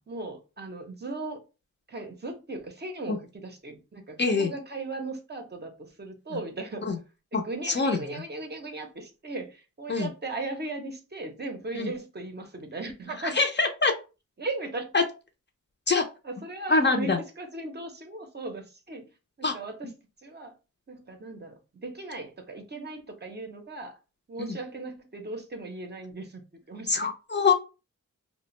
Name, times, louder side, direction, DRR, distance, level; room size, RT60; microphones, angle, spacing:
voice 1, 0.1-1.4 1.9-6.9 7.3-13.4 14.4-14.9 16.2-17.1 17.4-19.0 19.5-19.9 20.2-20.5 20.9-21.5 21.8-24.0 24.3-27.1, right 2 dB, 35° right, 4 dB, 0.5 m, -37 dB
voice 2, 4.2-4.5 6.3-6.4 6.8-7.0 7.3-8.0 9.9-10.1 11.7-11.9 13.2-13.9 14.9-15.0 15.9-16.0 16.7-17.2 19.4-19.6 24.4-24.6 26.9-27.5, left 4 dB, 35° left, 4 dB, 0.4 m, -24 dB
2.4 x 2.0 x 3.0 m, 0.31 s
wide cardioid pair, 100°, 32 cm